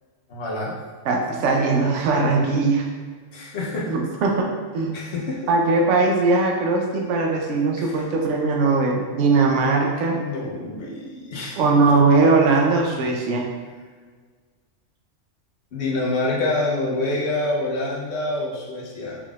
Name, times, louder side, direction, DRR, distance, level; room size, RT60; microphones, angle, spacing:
voice 1, 0.3-0.7 3.3-3.9 4.9-5.4 7.8-8.1 10.1-11.6 15.7-19.2, left 2 dB, 65° left, -4 dB, 1.1 m, -27 dB
voice 2, 1.0-2.9 3.9-4.5 4.7-4.9 5.5-10.2 11.5-13.5, right 3 dB, 70° right, 0 dB, 1.0 m, -20 dB
4.7 x 3.7 x 2.4 m, 1.5 s
omnidirectional pair, 1.3 m